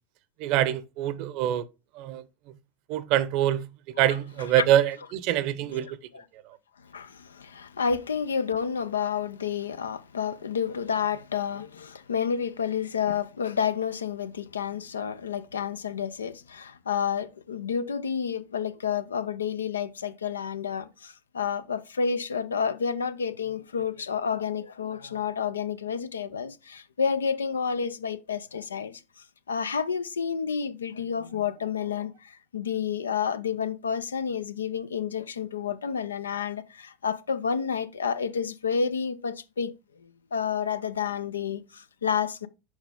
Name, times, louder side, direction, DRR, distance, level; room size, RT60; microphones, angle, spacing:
voice 1, 0.4-1.7 1.9-2.3 2.9-3.7 4.0-6.0 6.4-6.6, right 12 dB, 50° right, 0.7 m, -25 dB
voice 2, 6.8-42.5, left 7 dB, 85° left, 0.6 m, -30 dB
6.3 x 4.9 x 3.6 m
hypercardioid pair, 90°, 0 cm